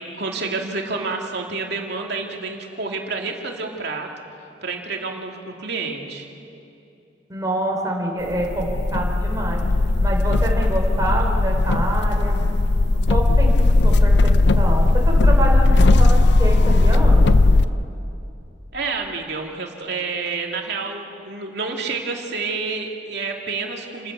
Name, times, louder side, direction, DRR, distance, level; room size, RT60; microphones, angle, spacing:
voice 1, 0.0-4.1 4.4-6.3 18.7-24.1, right 4 dB, 65° right, 1 dB, 2.7 m, -29 dB
voice 2, 7.3-9.6 10.0-12.4 13.1-17.3, right 1 dB, 20° right, -1 dB, 4.0 m, -26 dB
sound 1, 8.3-17.6, left 2 dB, 65° left, 0.6 m, -16 dB
29.5 x 15.5 x 6.9 m, 2.6 s
head